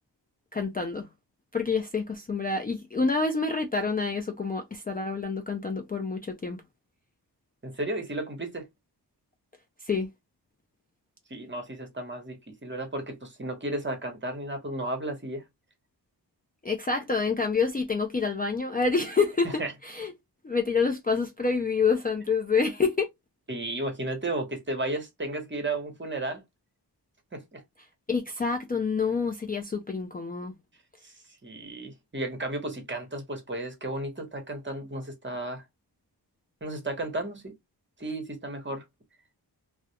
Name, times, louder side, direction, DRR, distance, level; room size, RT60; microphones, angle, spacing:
voice 1, 0.5-1.1 1.5-6.6 9.8-10.1 16.6-20.1 20.4-23.1 28.1-30.5, left 4 dB, 25° left, 0.4 m, -27 dB
voice 2, 7.6-8.7 11.3-12.4 12.6-15.4 19.6-19.7 23.5-26.4 27.3-27.6 31.0-31.1 31.4-35.6 36.6-37.5 38.0-38.8, right 2 dB, 30° right, 0.9 m, -33 dB
2.3 x 2.1 x 2.7 m
wide cardioid pair, 95°, 41 cm